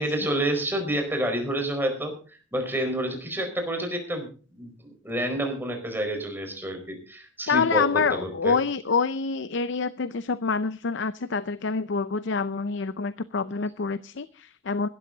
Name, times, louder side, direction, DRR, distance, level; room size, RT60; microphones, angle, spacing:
voice 1, 0.0-8.6, right 1 dB, 10° right, 4 dB, 4.7 m, -29 dB
voice 2, 7.5-14.9, left 5 dB, 65° left, 15 dB, 0.6 m, -26 dB
16.5 x 13.0 x 3.9 m, 0.37 s
head